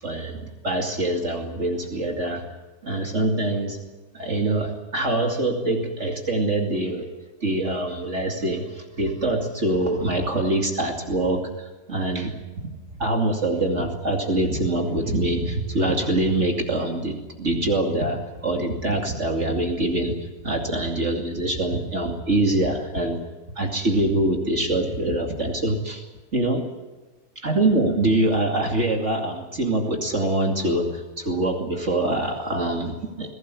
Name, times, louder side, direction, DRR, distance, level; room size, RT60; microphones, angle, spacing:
voice 1, 0.0-2.4 2.8-3.8 4.1-7.1 7.4-12.7 12.9-20.1 20.4-23.2 23.6-26.0 26.3-26.6 27.4-33.3, right 2 dB, 45° right, 2 dB, 2.8 m, -24 dB
22.5 x 17.5 x 9.7 m, 1.1 s
omnidirectional pair, 1.7 m